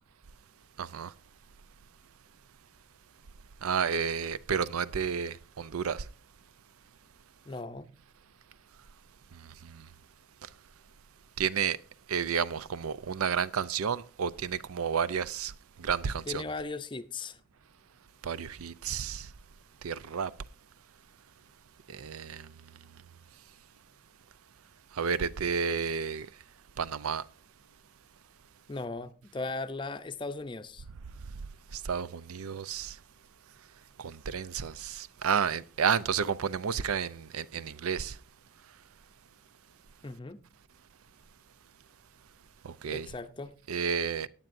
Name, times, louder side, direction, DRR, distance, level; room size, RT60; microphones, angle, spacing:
voice 1, 0.8-1.1 3.6-6.0 9.6-9.9 11.4-11.8 12.1-15.5 15.8-16.4 18.2-19.3 19.8-20.3 21.9-22.5 24.9-26.3 26.8-27.2 31.7-33.0 34.0-38.2 42.6-43.1 43.7-44.3, right 7 dB, 90° right, 0.5 m, -31 dB
voice 2, 7.4-7.9 16.3-17.4 28.7-30.9 40.0-40.4 42.9-43.5, left 3 dB, 20° left, 0.5 m, -38 dB
18.0 x 8.9 x 2.6 m
head